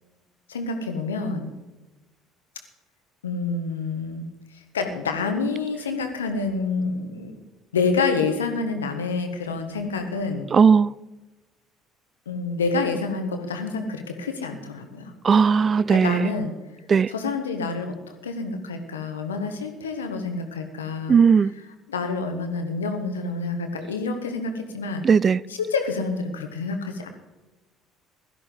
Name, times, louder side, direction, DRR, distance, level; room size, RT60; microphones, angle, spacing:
voice 1, 0.5-1.5 3.2-4.2 4.7-7.3 7.7-10.5 12.2-15.1 15.9-16.5 17.1-17.9 18.2-21.2 21.9-25.0 25.5-27.1, left 4 dB, 80° left, 1.5 m, -28 dB
voice 2, 10.5-10.9 15.2-16.3 16.9-17.1 21.1-21.5 25.0-25.4, right 6 dB, 35° right, 0.4 m, -17 dB
17.0 x 13.0 x 4.0 m
figure-of-eight pair, 55°, 0 cm